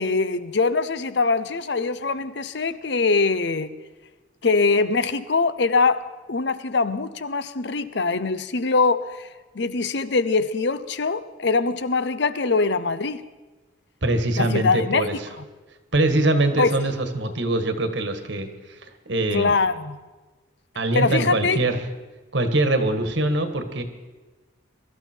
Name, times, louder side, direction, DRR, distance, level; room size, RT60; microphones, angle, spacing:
voice 1, 0.0-3.7 4.4-9.3 9.5-13.2 14.4-15.1 16.6-16.7 19.3-20.0 20.9-21.6, left 4 dB, 60° left, 0.7 m, -23 dB
voice 2, 14.0-15.1 15.9-18.5 19.1-19.5 20.7-21.8 22.3-23.8, right 2 dB, 65° right, 1.6 m, -23 dB
23.0 x 13.0 x 4.5 m
head